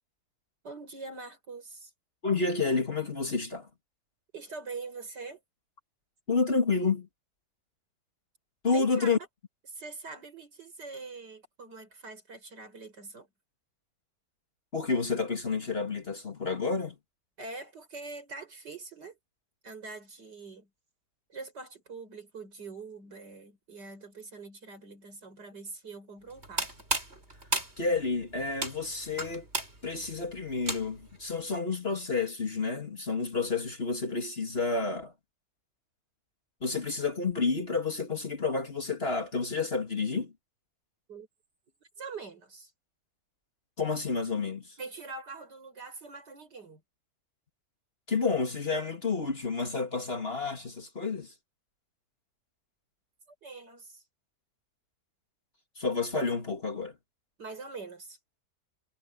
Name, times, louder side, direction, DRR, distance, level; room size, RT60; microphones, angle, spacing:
voice 1, 0.6-1.9 4.3-5.4 8.7-9.1 9.7-13.3 17.4-19.2 19.6-20.7 21.3-26.7 41.1-41.3 41.8-42.7 44.8-46.8 53.4-54.0 57.4-58.2, right 4 dB, 70° right, 6.0 m, -44 dB
voice 2, 2.2-3.7 6.3-7.1 8.6-9.2 14.7-17.0 27.8-29.5 29.8-35.1 36.6-40.3 43.8-44.8 48.1-51.3 55.8-57.0, left 4 dB, 35° left, 2.3 m, -30 dB
sound 1, 26.3-31.2, right 2 dB, 35° right, 6.0 m, -35 dB
omnidirectional pair, 1.9 m